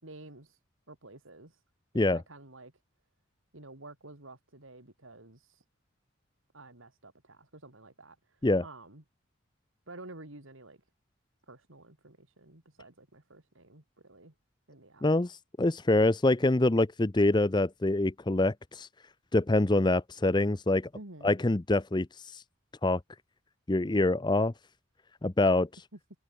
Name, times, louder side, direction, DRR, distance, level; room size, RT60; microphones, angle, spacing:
voice 1, 0.0-0.6 0.9-1.6 1.9-2.7 3.5-5.6 6.5-9.0 9.9-10.8 11.5-14.3 14.7-15.0 20.9-21.3, right 2 dB, 75° right, 3.4 m, -51 dB
voice 2, 15.0-18.9 19.3-20.9 21.2-22.1 22.3-22.4 22.8-23.0 23.7-24.5 25.2-25.7, left 2 dB, 20° left, 0.6 m, -25 dB
open air
head